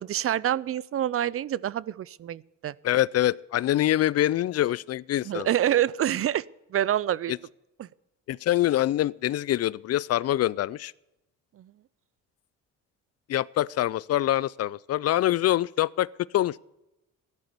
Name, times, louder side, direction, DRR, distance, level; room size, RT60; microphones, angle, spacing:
voice 1, 0.0-2.7 5.2-6.4 6.7-7.3 7.8-7.9 11.6-11.7, right 11 dB, 50° right, 0.5 m, -27 dB
voice 2, 2.8-5.5 7.3-7.4 8.3-10.9 13.3-16.1 16.3-16.6, left 13 dB, 55° left, 0.4 m, -25 dB
13.0 x 11.0 x 6.9 m
cardioid pair, 90°, 30 cm